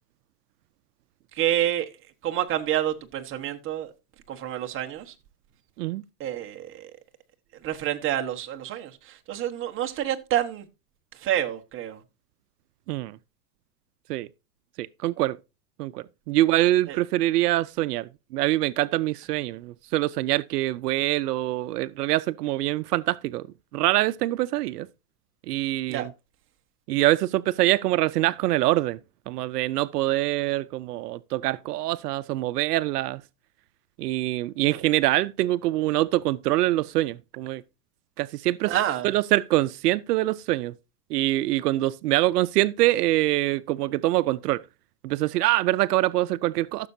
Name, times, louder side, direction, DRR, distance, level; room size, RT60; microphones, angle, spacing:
voice 1, 1.3-1.9 2.2-3.9 4.3-5.1 6.2-6.9 7.6-10.7 11.1-12.0 16.9-17.0 25.9-26.1 38.7-39.1, right 12 dB, 25° right, 1.1 m, -28 dB
voice 2, 14.8-15.4 15.8-23.4 23.7-24.9 25.5-26.1 26.9-29.0 29.3-33.2 34.0-37.6 38.2-38.7 39.0-40.7 41.1-44.6 45.0-46.9, right 16 dB, 80° right, 0.6 m, -24 dB
14.5 x 6.8 x 2.7 m
supercardioid pair, 140°, 46 cm